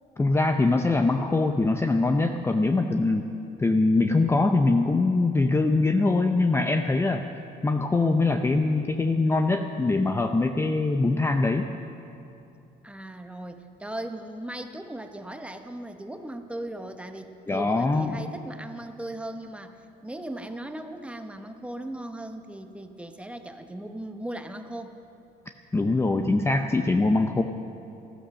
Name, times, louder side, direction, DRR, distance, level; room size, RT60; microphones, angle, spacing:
voice 1, 0.2-3.3 3.6-7.2 7.6-11.7 17.5-18.2 25.7-27.4, left 3 dB, 15° left, 6 dB, 0.6 m, -23 dB
voice 2, 12.8-19.8 20.0-24.9, right 1 dB, 5° right, 7 dB, 0.9 m, -38 dB
14.0 x 13.0 x 6.4 m, 2.7 s
cardioid pair, 110°, 17 cm